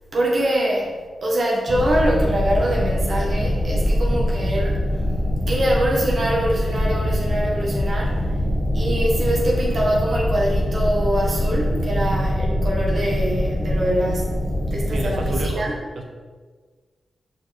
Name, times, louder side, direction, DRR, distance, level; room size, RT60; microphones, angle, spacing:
voice 1, 0.1-0.9 1.2-4.8 5.5-8.2 8.7-15.7, right 1 dB, 60° right, -3 dB, 1.3 m, -24 dB
sound 1, 1.7-15.5, equal, 25° left, 1.6 m, -23 dB
voice 2, 14.9-15.7, right 2 dB, 75° right, 2 dB, 0.9 m, -30 dB
5.1 x 4.6 x 4.4 m, 1.5 s
supercardioid pair, 40°, 0 cm